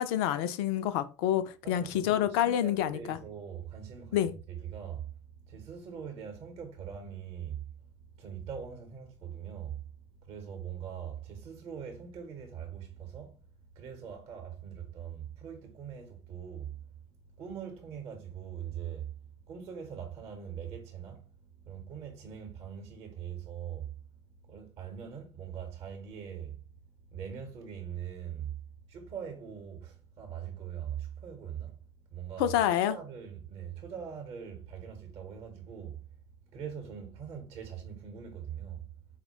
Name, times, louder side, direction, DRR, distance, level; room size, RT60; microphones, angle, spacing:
voice 1, 0.0-3.2 4.1-4.3 32.4-33.0, left 11 dB, 50° left, 0.4 m, -28 dB
voice 2, 1.6-9.9 10.2-13.4 13.7-19.1 19.5-23.9 24.3-26.6 27.1-28.6 28.9-36.1 36.5-38.9, right 8 dB, 40° right, 0.8 m, -42 dB
4.1 x 2.1 x 2.9 m
figure-of-eight pair, 70°, 16 cm